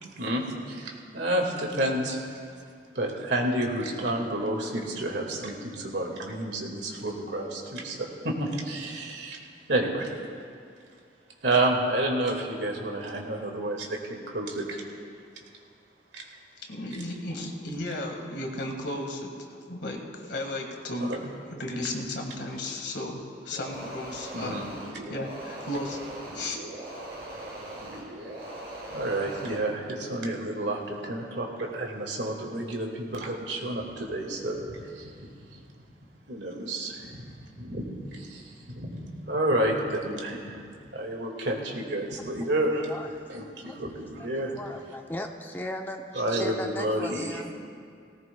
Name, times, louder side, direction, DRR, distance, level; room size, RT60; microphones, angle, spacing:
voice 1, 0.2-2.2 2.9-9.4 9.7-10.1 11.4-14.8 16.1-16.3 21.0-21.2 24.3-24.7 28.2-28.3 28.9-35.1 35.5-35.6 36.3-37.2 37.6-40.6 40.9-42.9 43.3-44.5 46.1-47.4, right 1 dB, 75° right, 0 dB, 2.0 m, -30 dB
voice 2, 16.7-24.7 25.1-26.6, left 1 dB, 70° left, 2 dB, 1.8 m, -34 dB
sound 1, 23.5-29.7, right 1 dB, 60° right, 3.0 m, -40 dB
voice 3, 42.9-43.2 43.7-43.8 44.6-47.5, left 1 dB, 10° left, 3 dB, 0.6 m, -37 dB
18.5 x 18.0 x 2.3 m, 2.3 s
head